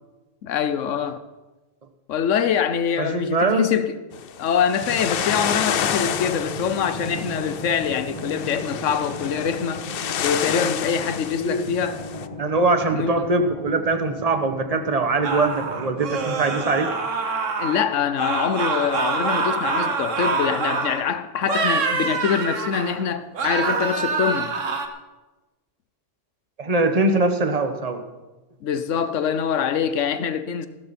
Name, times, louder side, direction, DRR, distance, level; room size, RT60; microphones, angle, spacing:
voice 1, 0.4-1.2 2.1-4.0 4.4-9.8 10.2-12.0 12.9-13.2 17.6-24.5 28.6-30.7, left 7 dB, 85° left, 1.2 m, -24 dB
voice 2, 3.0-3.7 11.3-11.6 12.4-16.9 26.6-28.0, right 3 dB, 30° right, 1.2 m, -22 dB
sound 1, 4.1-12.3, left 9 dB, 60° left, 0.7 m, -30 dB
Drum, 4.8-17.2, equal, 30° left, 1.8 m, -36 dB
sound 2, 15.2-17.9 18.2-21.0 21.4-23.0 23.3-24.9, right 4 dB, 85° right, 1.6 m, -25 dB
15.5 x 13.0 x 4.3 m
omnidirectional pair, 1.3 m